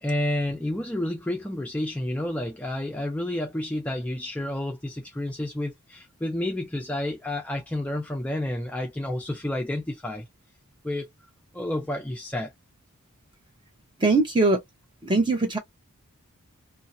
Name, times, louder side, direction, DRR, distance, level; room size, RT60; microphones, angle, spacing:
voice 1, 0.0-10.2 10.8-11.1 11.5-12.5, left 1 dB, 5° left, 0.4 m, -30 dB
voice 2, 14.0-14.6 15.0-15.6, right 3 dB, 20° right, 0.8 m, -21 dB
2.7 x 2.1 x 2.6 m
head